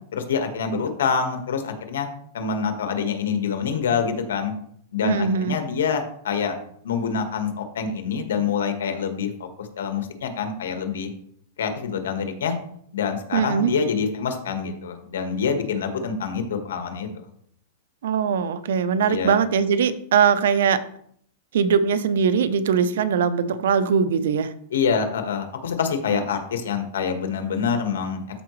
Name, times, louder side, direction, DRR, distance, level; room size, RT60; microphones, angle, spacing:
voice 1, 0.1-2.1 2.3-4.5 4.9-6.6 6.8-9.3 9.6-11.1 11.6-12.5 12.9-17.1 19.1-19.3 24.7-28.2, left 6 dB, 90° left, 6 dB, 1.6 m, -26 dB
voice 2, 5.0-5.5 13.3-13.7 18.0-20.8 21.5-24.5 26.1-26.2, right 7 dB, 75° right, 12 dB, 0.8 m, -21 dB
13.0 x 4.9 x 3.2 m, 0.65 s
supercardioid pair, 150°, 0 cm